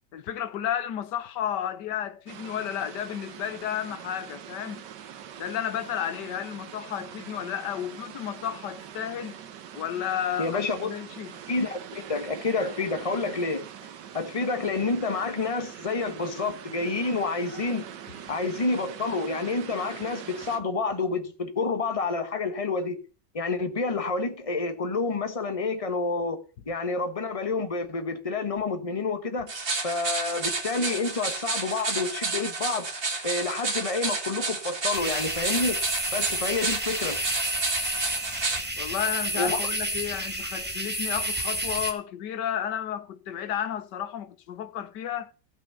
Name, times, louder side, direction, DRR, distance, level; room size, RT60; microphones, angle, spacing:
voice 1, 0.1-4.8 5.4-9.4 9.7-11.4 38.8-45.3, left 10 dB, 75° left, 1.5 m, -32 dB
sound 1, 2.3-20.6, right 9 dB, 80° right, 1.6 m, -43 dB
voice 2, 10.4-10.9 11.5-13.7 14.1-17.8 18.3-23.0 23.3-26.4 26.7-29.5 29.8-32.9 33.2-35.8 36.1-37.2 39.3-39.6, left 3 dB, 20° left, 1.3 m, -29 dB
sound 2, 29.5-38.6, right 3 dB, 50° right, 3.0 m, -31 dB
sound 3, 34.9-41.9, right 1 dB, 5° right, 1.5 m, -30 dB
14.5 x 6.3 x 7.0 m
omnidirectional pair, 1.9 m